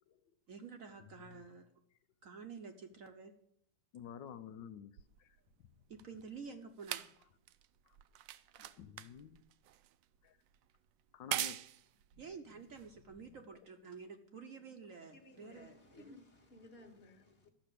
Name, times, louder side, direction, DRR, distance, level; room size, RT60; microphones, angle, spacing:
voice 1, 0.5-1.7 2.2-3.3 5.9-7.1 12.2-15.7, right 5 dB, 55° right, 6 dB, 1.1 m, -50 dB
voice 2, 1.0-1.4 3.9-4.9 5.2-5.4 7.8-8.0 8.6-9.4 10.2-10.4 11.1-11.6 13.3-13.4 16.8-17.5, left 8 dB, 80° left, 10 dB, 1.4 m, -52 dB
sound 1, 5.0-13.6 14.4-14.5, right 13 dB, 80° right, 1.3 m, -45 dB
voice 3, 15.1-17.5, left 1 dB, 35° left, 4 dB, 1.7 m, -57 dB
12.5 x 6.1 x 8.3 m, 0.72 s
omnidirectional pair, 2.0 m